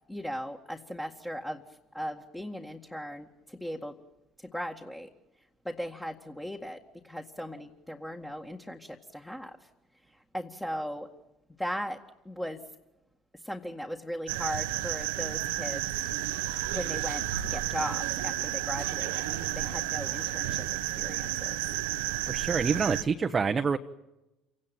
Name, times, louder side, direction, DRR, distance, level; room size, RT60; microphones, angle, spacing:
voice 1, 0.1-4.0 4.4-5.1 5.6-9.7 10.1-11.1 11.6-12.6 13.3-15.9 16.7-20.6 21.0-21.6, equal, 10° left, 2 dB, 1.9 m, -38 dB
sound 1, 14.3-23.0, right 14 dB, 70° right, 1.0 m, -32 dB
voice 2, 22.3-23.8, right 5 dB, 30° right, 5 dB, 1.1 m, -27 dB
29.0 x 18.0 x 9.1 m, 0.98 s
figure-of-eight pair, 60°, 0 cm